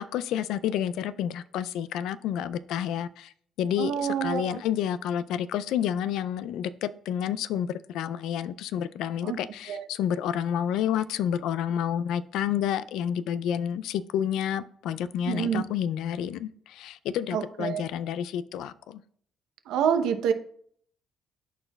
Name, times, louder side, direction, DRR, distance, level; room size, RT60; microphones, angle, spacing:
voice 1, 0.0-3.3 3.6-19.0, left 9 dB, 80° left, 0.3 m, -29 dB
voice 2, 3.8-4.6 9.2-9.4 9.7-9.8 15.3-15.6 17.3-17.8 19.7-20.3, right 8 dB, 80° right, 0.7 m, -27 dB
12.5 x 4.4 x 2.3 m
supercardioid pair, 80°, 0 cm